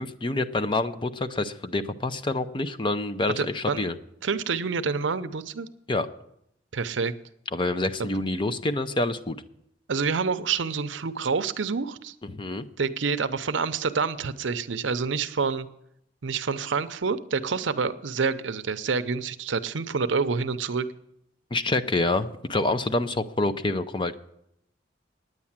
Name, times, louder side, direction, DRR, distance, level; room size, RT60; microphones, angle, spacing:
voice 1, 0.0-4.0 5.9-6.1 7.5-9.4 12.2-12.6 21.5-24.2, left 2 dB, 25° left, 11 dB, 0.5 m, -27 dB
voice 2, 3.4-3.9 4.2-5.7 6.7-7.1 8.0-8.1 9.9-12.1 12.8-15.7 16.2-20.9, right 5 dB, 70° right, 11 dB, 0.6 m, -27 dB
9.7 x 9.4 x 7.3 m, 0.77 s
head